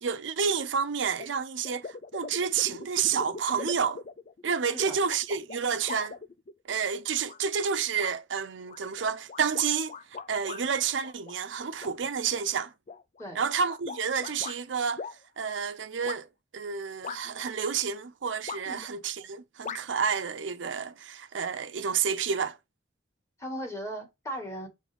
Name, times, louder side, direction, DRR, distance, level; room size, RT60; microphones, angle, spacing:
voice 1, 0.0-4.0 4.4-6.2 6.7-9.9 10.3-12.7 13.3-15.1 15.4-16.3 16.5-22.6, right 6 dB, 80° right, 0.6 m, -29 dB
sound 1, 1.2-1.3 1.6-6.7 7.3-7.7 8.0-8.2 8.7-10.6 11.0-11.9 12.3-14.6 15.0-15.2 16.1-16.2 17.0-17.5 18.5-18.9 19.6-19.8, left 5 dB, 40° left, 0.4 m, -41 dB
voice 2, 23.4-24.7, equal, 15° left, 1.9 m, -37 dB
7.0 x 3.9 x 3.4 m
head